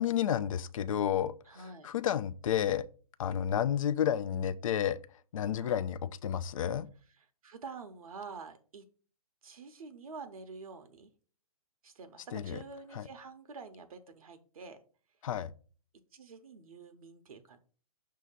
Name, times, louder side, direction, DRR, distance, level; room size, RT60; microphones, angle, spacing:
voice 1, 0.0-2.8 3.2-5.0 5.3-6.9 12.3-12.6 12.9-13.0 15.2-15.5, left 9 dB, 60° left, 0.4 m, -31 dB
voice 2, 1.5-1.9 5.6-5.8 7.2-8.8 9.4-11.1 11.8-14.8 16.1-17.6, right 4 dB, 65° right, 0.8 m, -48 dB
6.3 x 2.8 x 5.5 m
figure-of-eight pair, 125°, 19 cm